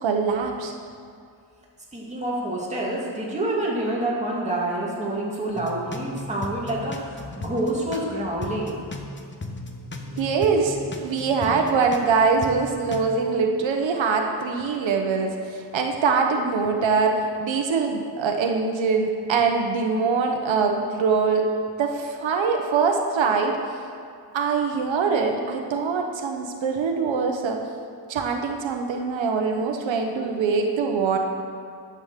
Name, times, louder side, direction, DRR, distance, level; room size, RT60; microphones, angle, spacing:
voice 1, 0.0-0.7 10.1-21.5 21.8-23.6 24.3-27.6 28.1-31.2, right 5 dB, 90° right, 3 dB, 1.1 m, -23 dB
voice 2, 1.9-8.8, right 1 dB, 15° right, -4 dB, 2.3 m, -27 dB
sound 1, 5.5-8.1 8.4-12.1 12.4-13.1, left 2 dB, 25° left, 0.9 m, -36 dB
10.5 x 8.2 x 6.7 m, 2.3 s
wide cardioid pair, 155°, 44 cm